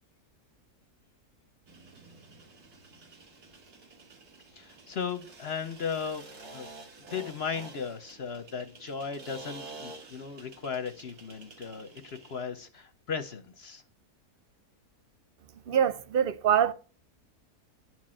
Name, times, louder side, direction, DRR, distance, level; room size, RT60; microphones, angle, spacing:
sound 1, 1.7-12.5, right 3 dB, 85° right, 2.3 m, -49 dB
voice 1, 4.5-6.2 6.5-6.7 7.0-13.8, left 6 dB, 50° left, 0.8 m, -36 dB
voice 2, 15.7-16.7, right 9 dB, 60° right, 0.6 m, -24 dB
10.5 x 4.6 x 7.4 m
omnidirectional pair, 1.6 m